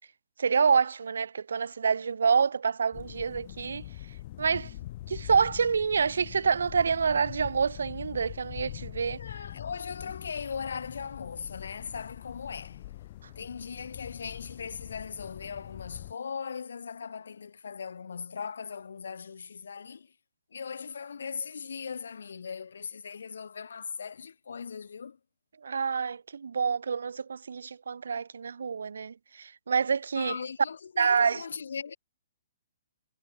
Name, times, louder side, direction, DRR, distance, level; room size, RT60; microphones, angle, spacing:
voice 1, 0.4-3.8 4.4-4.7 5.1-9.2 25.6-30.4 31.0-31.4, right 6 dB, 85° right, 0.9 m, -27 dB
sound 1, 2.9-16.1, left 15 dB, 40° left, 5.0 m, -44 dB
voice 2, 9.1-12.9 13.4-20.1 20.5-25.2 30.1-32.0, left 6 dB, 85° left, 2.9 m, -39 dB
hypercardioid pair, 160°, 0 cm